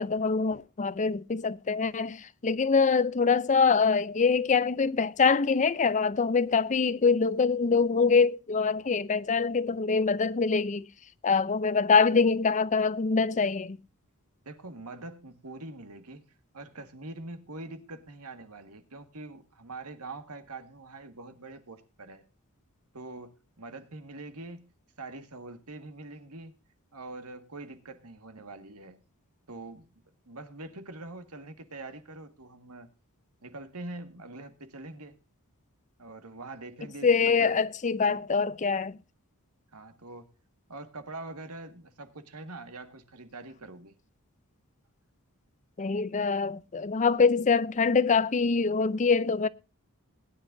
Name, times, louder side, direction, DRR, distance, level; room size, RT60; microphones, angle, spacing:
voice 1, 0.0-10.8 11.2-13.8 37.0-39.0 45.8-49.5, left 5 dB, 35° left, 0.5 m, -24 dB
voice 2, 14.5-16.3 16.5-22.2 22.9-24.7 25.0-26.5 26.9-29.0 29.5-29.9 30.3-32.9 33.4-35.2 36.0-37.6 38.0-38.3 39.7-40.3 40.7-44.0, right 2 dB, 85° right, 1.8 m, -44 dB
20.5 x 10.0 x 2.7 m
head